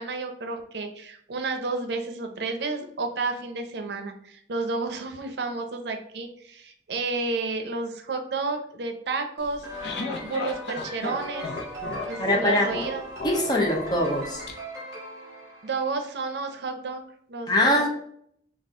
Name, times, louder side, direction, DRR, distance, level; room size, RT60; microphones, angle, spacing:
voice 1, 0.0-9.7 10.2-11.5 12.1-13.1 15.6-17.0 17.3-17.9, right 3 dB, 70° right, 5 dB, 0.5 m, -31 dB
sound 1, 9.4-14.5, left 3 dB, 75° left, 0.6 m, -35 dB
sound 2, 9.6-16.3, equal, 20° right, 1.1 m, -39 dB
voice 2, 12.2-12.7 13.2-14.4 17.5-17.9, left 1 dB, 25° left, 1 dB, 0.6 m, -22 dB
4.1 x 2.4 x 3.6 m, 0.67 s
head